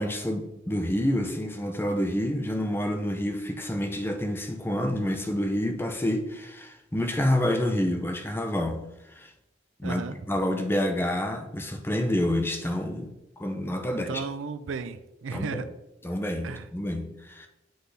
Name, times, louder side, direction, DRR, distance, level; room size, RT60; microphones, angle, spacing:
voice 1, 0.0-9.3 9.8-10.0 10.3-13.1 13.4-14.2 15.3-15.6 16.0-17.5, left 1 dB, 10° left, 4 dB, 0.6 m, -28 dB
voice 2, 9.8-10.2 13.9-15.6 16.4-16.7, right 5 dB, 90° right, 11 dB, 0.5 m, -35 dB
7.7 x 4.0 x 3.4 m, 0.91 s
head